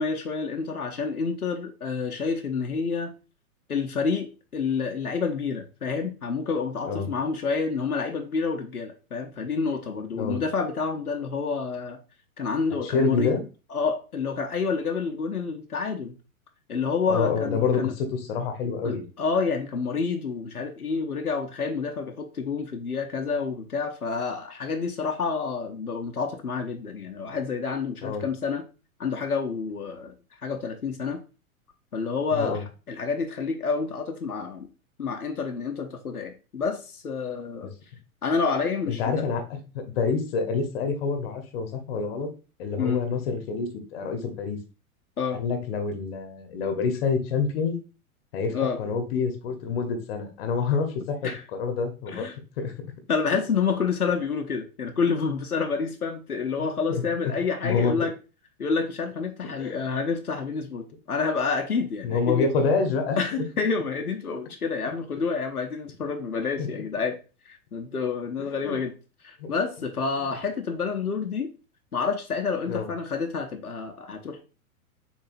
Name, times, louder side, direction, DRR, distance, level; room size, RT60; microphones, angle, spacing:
voice 1, 0.0-3.1 3.7-12.0 12.4-13.3 13.7-16.2 16.7-17.9 18.8-28.6 29.0-30.1 30.4-31.2 31.9-32.6 32.9-34.7 35.0-37.7 38.2-39.2 42.8-43.0 45.2-45.4 48.5-48.8 51.2-51.4 52.1-52.3 53.1-58.1 58.6-62.5 63.2-67.2 67.5-68.9 69.2-71.5 71.9-74.4, left 5 dB, 85° left, 4 dB, 0.8 m, -28 dB
voice 2, 12.8-13.4 17.1-19.1 28.0-28.3 32.3-32.6 38.9-42.3 42.6-44.6 45.3-47.8 48.3-52.2 52.6-52.7 56.6-57.3 57.6-57.9 59.6-59.8 62.0-63.5 66.6-66.7 68.6-68.8 69.4-69.5 72.7-72.9, left 5 dB, 40° left, 5 dB, 1.0 m, -27 dB
6.9 x 2.7 x 2.5 m, 0.33 s
figure-of-eight pair, 105°, 43 cm